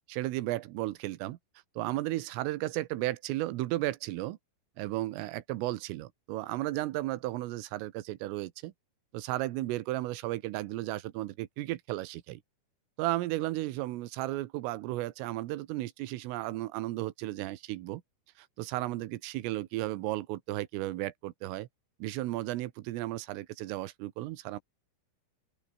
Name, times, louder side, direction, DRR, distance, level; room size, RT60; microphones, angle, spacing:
voice 1, 0.1-1.4 1.8-4.4 4.8-8.7 9.1-12.4 13.0-18.0 18.4-21.7 22.0-24.6, right 17 dB, 80° right, 3.7 m, -34 dB
open air
omnidirectional pair, 5.8 m